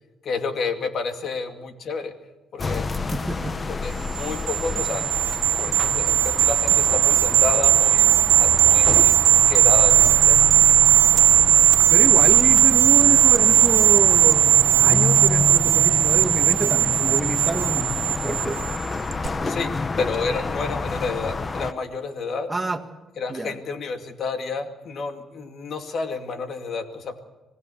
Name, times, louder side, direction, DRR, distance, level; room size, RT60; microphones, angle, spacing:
voice 1, 0.2-2.1 2.5-2.9 3.7-5.1 5.6-8.1 8.4-10.5 19.4-22.5 23.2-27.2, left 4 dB, 60° left, 6 dB, 2.3 m, -30 dB
sound 1, 2.6-21.7, left 3 dB, 30° left, 1.0 m, -29 dB
voice 2, 3.1-3.6 11.9-18.6 22.5-22.8 23.3-23.5, right 2 dB, 15° right, 5 dB, 1.8 m, -28 dB
sound 2, 4.1-18.8 19.1-19.3, right 11 dB, 80° right, 0.7 m, -17 dB
26.0 x 18.5 x 7.0 m, 1.1 s
cardioid pair, 90°, 0 cm